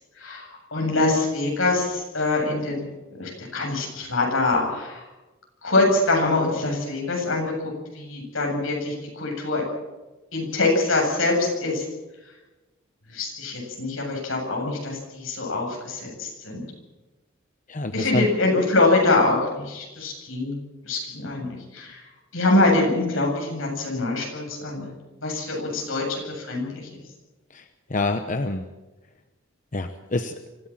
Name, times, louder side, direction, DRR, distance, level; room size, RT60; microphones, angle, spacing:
voice 1, 0.2-2.8 3.1-5.0 5.6-7.5 7.9-9.6 10.3-11.8 13.1-16.6 17.9-20.6 20.9-22.0 22.3-24.9 25.2-26.6, left 2 dB, 80° left, 0 dB, 7.9 m, -24 dB
voice 2, 17.7-18.3 27.5-27.6 27.9-28.6 29.7-30.3, left 2 dB, 40° left, 8 dB, 1.0 m, -26 dB
25.0 x 15.5 x 7.5 m, 1.1 s
head